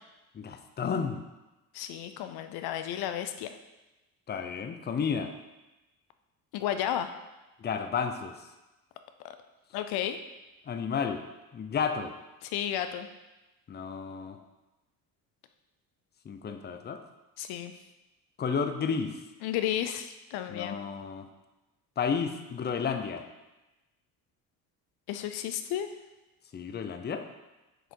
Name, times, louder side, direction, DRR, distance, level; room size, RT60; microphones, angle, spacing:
voice 1, 0.3-1.2 4.3-5.3 7.6-8.5 10.7-11.2 11.5-12.1 13.7-14.4 16.2-17.0 18.4-19.2 20.5-21.3 22.0-23.2 26.5-27.2, left 6 dB, 25° left, 7 dB, 0.6 m, -32 dB
voice 2, 1.7-3.5 6.5-7.1 9.7-10.2 12.4-13.1 17.4-17.7 19.4-20.8 25.1-25.9, left 11 dB, 75° left, 9 dB, 0.6 m, -32 dB
6.5 x 4.9 x 4.5 m, 1.1 s
cardioid pair, 105°, 38 cm